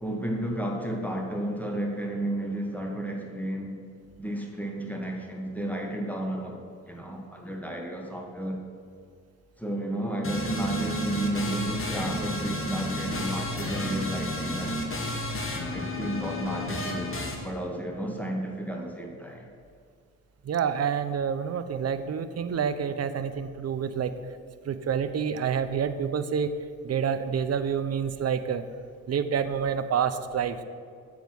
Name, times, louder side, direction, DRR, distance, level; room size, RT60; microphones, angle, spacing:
voice 1, 0.0-3.8 4.2-8.6 9.6-14.8 15.7-17.2 17.4-19.5, right 1 dB, 5° left, 1 dB, 1.4 m, -32 dB
sound 1, 10.2-17.4, left 1 dB, 35° left, 1.5 m, -32 dB
voice 2, 20.4-24.1 24.6-26.5 26.8-28.7 29.1-30.6, right 7 dB, 40° right, 11 dB, 0.6 m, -28 dB
6.9 x 4.7 x 6.1 m, 2.2 s
hypercardioid pair, 40°, 38 cm